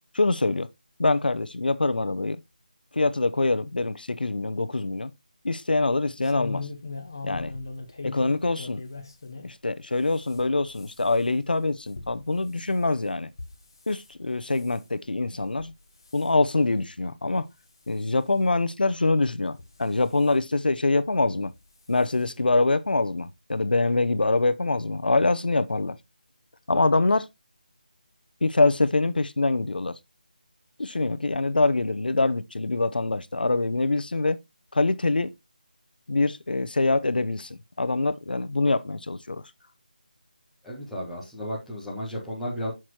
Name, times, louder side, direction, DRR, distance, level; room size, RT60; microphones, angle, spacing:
voice 1, 0.1-0.7 1.0-2.4 2.9-5.1 5.4-6.7 7.2-7.5 8.0-8.8 9.4-13.3 13.9-15.7 16.1-17.5 17.9-21.5 21.9-26.0 26.7-27.3 28.4-29.9 30.8-34.4 34.7-35.3 36.1-39.4, left 3 dB, 85° left, 0.7 m, -24 dB
sound 1, 6.2-9.5 10.0-14.1 14.5-14.8 15.4-15.7 16.0-16.3 16.9-17.0 17.4-17.5 18.6-18.7 19.5-20.3 21.4-21.6 22.0-22.1 22.4-22.5, left 3 dB, 30° left, 0.7 m, -40 dB
voice 2, 40.6-42.7, equal, ahead, 0.4 m, -33 dB
9.1 x 6.1 x 2.9 m
figure-of-eight pair, 180°, 5 cm